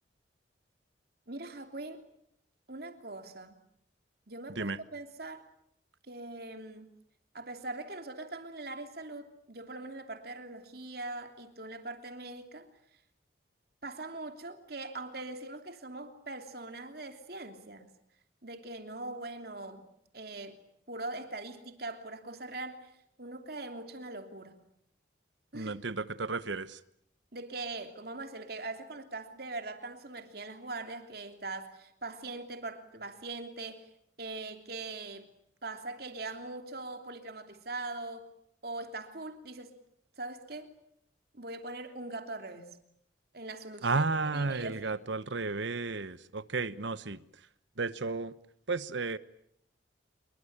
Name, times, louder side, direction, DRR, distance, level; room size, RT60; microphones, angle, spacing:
voice 1, 1.3-2.0 2.7-3.6 4.3-5.5 6.1-6.9 7.3-12.7 13.8-17.9 18.4-19.8 20.1-20.6 20.9-22.9 23.2-24.6 25.5-25.7 27.3-33.9 34.2-35.3 35.6-38.3 38.6-39.8 40.2-40.7 41.3-42.7 43.3-45.0, right 2 dB, 50° right, 3.0 m, -41 dB
voice 2, 25.5-26.8 43.8-47.2 47.8-48.3 48.7-49.2, right 3 dB, 70° right, 1.1 m, -33 dB
26.5 x 23.0 x 8.8 m
head